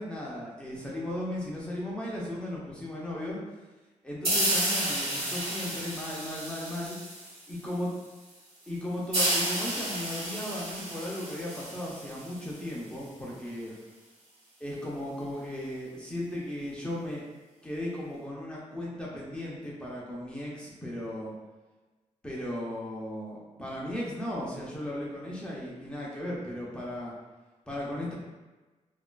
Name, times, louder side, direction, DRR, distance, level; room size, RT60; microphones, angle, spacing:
voice 1, 0.0-3.4 4.0-7.0 7.5-7.9 8.7-13.7 14.6-17.3 17.6-21.3 22.2-27.1 27.7-28.1, left 1 dB, 10° left, -5 dB, 0.5 m, -36 dB
sound 1, 4.2-7.6 9.1-12.6, right 1 dB, 50° right, 1.0 m, -31 dB
2.9 x 2.4 x 2.2 m, 1.2 s
wide cardioid pair, 170°, 13 cm